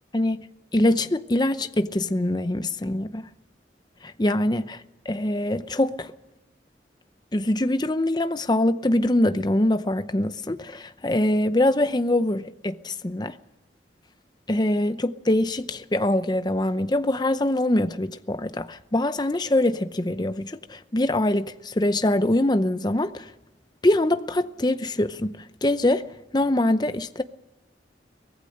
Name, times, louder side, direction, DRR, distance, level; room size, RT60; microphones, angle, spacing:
voice 1, 0.1-0.4 0.7-3.3 4.0-6.1 7.3-13.3 14.5-23.3 23.8-26.1 26.3-27.2, left 1 dB, 25° left, 0.7 m, -24 dB
24.0 x 18.0 x 6.6 m
head